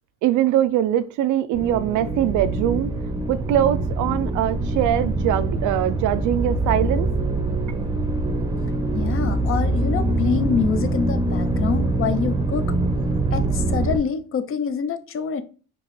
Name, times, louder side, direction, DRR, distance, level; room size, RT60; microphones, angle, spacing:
voice 1, 0.2-2.9 3.3-7.1, right 12 dB, 80° right, 0.5 m, -22 dB
sound 1, 1.5-14.0, right 2 dB, 15° right, 0.7 m, -24 dB
voice 2, 8.9-12.7 13.3-15.4, left 6 dB, 45° left, 0.6 m, -26 dB
5.2 x 2.9 x 3.1 m
cardioid pair, 125°, 30 cm